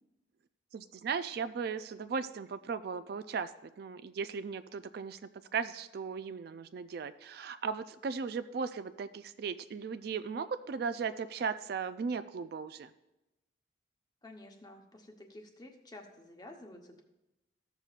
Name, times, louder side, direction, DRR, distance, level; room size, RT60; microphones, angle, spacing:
voice 1, 0.7-3.5 3.8-12.9, right 5 dB, 55° right, 12 dB, 0.3 m, -37 dB
voice 2, 14.2-17.0, left 1 dB, 20° left, 3 dB, 0.9 m, -51 dB
14.5 x 6.8 x 2.4 m, 0.94 s
head